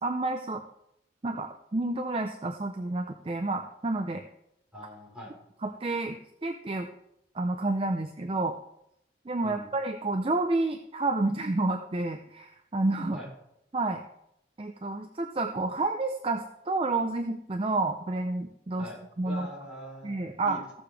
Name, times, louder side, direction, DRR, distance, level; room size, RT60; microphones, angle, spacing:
voice 1, 0.0-0.6 1.2-4.2 5.6-6.9 7.3-8.5 9.3-13.2 13.7-14.0 14.6-18.9 19.2-19.5 20.0-20.8, right 2 dB, 30° right, 5 dB, 0.5 m, -30 dB
voice 2, 4.7-5.3 9.4-9.7 13.1-13.3 18.8-19.0 19.2-20.2 20.4-20.6, equal, 5° right, -6 dB, 4.1 m, -42 dB
15.5 x 6.8 x 3.3 m, 0.78 s
head